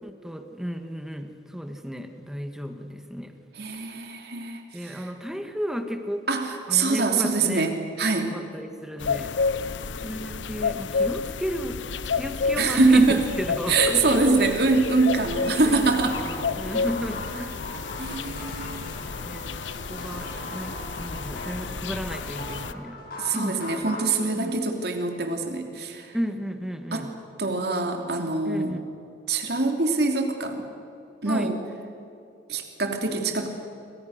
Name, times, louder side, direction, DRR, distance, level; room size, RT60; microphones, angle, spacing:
voice 1, 0.0-3.4 4.7-6.3 6.7-7.7 8.3-9.3 10.0-14.1 14.4-14.6 15.6-17.7 18.0-19.5 19.9-23.0 23.3-23.6 24.3-24.5 26.1-27.1 28.4-28.8 31.2-31.5, equal, 5° right, 6 dB, 1.7 m, -33 dB
voice 2, 3.6-5.1 6.3-8.3 12.6-13.2 13.7-16.2 18.0-18.9 23.2-26.1 26.9-27.1 27.4-28.7 29.3-30.7 31.2-31.6 32.5-33.5, right 3 dB, 60° right, 4 dB, 3.1 m, -24 dB
sound 1, 9.0-22.7, left 5 dB, 85° left, 0.7 m, -31 dB
sound 2, 16.1-24.1, left 1 dB, 50° left, 6.2 m, -38 dB
28.5 x 25.5 x 6.7 m, 2.6 s
head